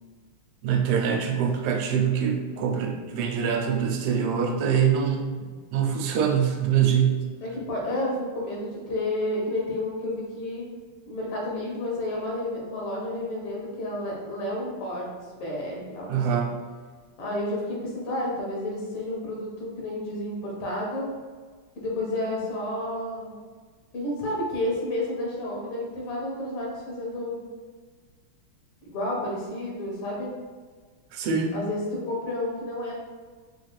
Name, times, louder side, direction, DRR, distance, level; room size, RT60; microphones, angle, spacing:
voice 1, 0.6-7.2 16.1-16.6 31.1-31.6, right 7 dB, 90° right, 2 dB, 1.5 m, -24 dB
voice 2, 7.4-10.6 11.1-15.1 15.3-16.2 17.2-21.1 21.8-23.3 23.9-27.4 28.8-30.3 31.5-32.9, left 1 dB, 80° left, -3 dB, 2.0 m, -31 dB
4.5 x 2.4 x 3.1 m, 1.5 s
omnidirectional pair, 2.4 m